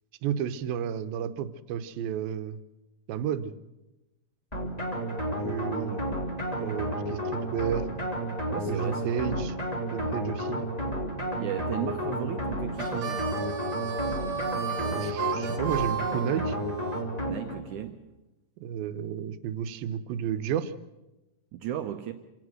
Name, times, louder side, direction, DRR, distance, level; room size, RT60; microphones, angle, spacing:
voice 1, 0.2-2.6 3.1-3.5 5.4-6.1 6.6-7.9 8.7-9.6 9.9-10.7 14.8-16.6 18.6-20.7, right 9 dB, 90° right, 12 dB, 2.7 m, -32 dB
sound 1, 4.5-17.7, equal, 10° left, 2.6 m, -32 dB
voice 2, 8.5-9.3 11.4-13.3 17.2-18.0 21.5-22.1, right 11 dB, 70° right, 7 dB, 2.1 m, -35 dB
Harmonica, 12.7-17.0, right 6 dB, 45° right, 2.3 m, -34 dB
27.5 x 17.0 x 6.5 m, 1.0 s
omnidirectional pair, 4.1 m